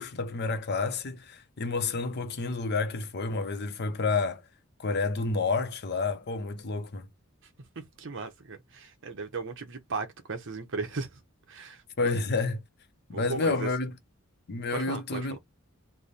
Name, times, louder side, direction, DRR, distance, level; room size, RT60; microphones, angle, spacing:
voice 1, 0.0-4.4 4.8-7.1 12.0-12.6 13.1-13.9 14.5-15.4, left 3 dB, 50° left, 0.6 m, -29 dB
voice 2, 7.8-11.2 11.5-12.2 13.1-13.7 14.7-15.3, right 4 dB, 60° right, 0.8 m, -36 dB
3.3 x 2.1 x 4.1 m
head